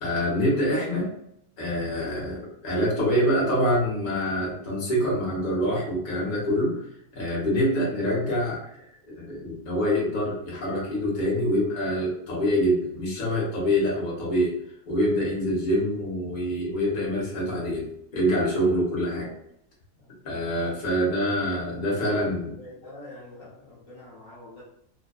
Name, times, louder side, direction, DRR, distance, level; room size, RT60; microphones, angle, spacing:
voice 1, 0.0-1.1 1.6-6.8 7.1-8.6 9.0-14.5 14.9-19.3 20.2-22.5, equal, 40° left, -4 dB, 0.9 m, -25 dB
voice 2, 22.1-24.6, left 2 dB, 60° left, -6 dB, 1.1 m, -46 dB
2.6 x 2.1 x 2.3 m, 0.75 s
omnidirectional pair, 1.6 m